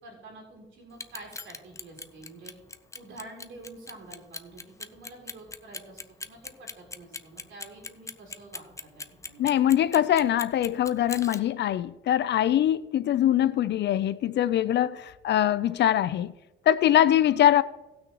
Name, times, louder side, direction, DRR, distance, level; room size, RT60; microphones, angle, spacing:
voice 1, 0.0-2.5 2.9-9.5 17.0-17.1, right 2 dB, 70° right, 3.8 m, -48 dB
Clock, 0.9-11.4, left 3 dB, 15° left, 0.6 m, -39 dB
voice 2, 9.4-16.3 16.7-17.6, left 11 dB, 60° left, 0.5 m, -23 dB
18.5 x 6.3 x 3.0 m
cardioid pair, 90°, 20 cm